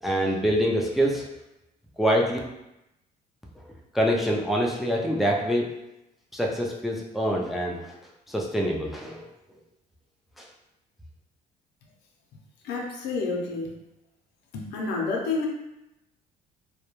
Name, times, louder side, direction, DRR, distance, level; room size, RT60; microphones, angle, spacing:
voice 1, 0.0-1.3 2.0-2.4 3.6-3.7 3.9-5.8 6.3-7.9 8.3-9.3 10.4-10.5, equal, ahead, -2 dB, 0.4 m, -25 dB
voice 2, 12.6-13.7 14.5-15.5, left 3 dB, 85° left, 0 dB, 0.6 m, -29 dB
2.3 x 2.2 x 2.9 m, 0.89 s
cardioid pair, 110°, 17 cm